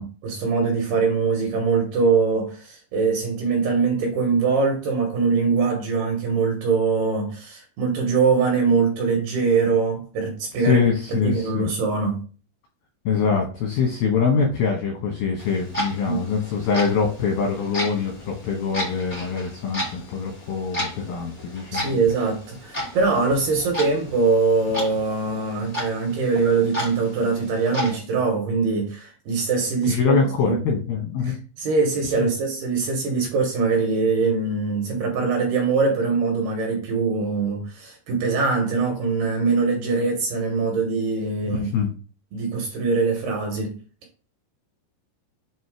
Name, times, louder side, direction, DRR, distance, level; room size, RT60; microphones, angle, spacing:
voice 1, 0.0-10.8 11.1-12.2 16.0-16.2 21.7-30.6 31.2-41.7 42.3-43.8, right 4 dB, 70° right, 2 dB, 2.7 m, -22 dB
voice 2, 10.6-11.7 13.1-22.0 29.9-31.4 32.2-32.3 41.5-41.9, left 5 dB, 80° left, 0 dB, 2.1 m, -24 dB
Clock, 15.4-28.0, equal, 55° left, 0.5 m, -34 dB
7.5 x 2.8 x 4.7 m, 0.38 s
omnidirectional pair, 5.7 m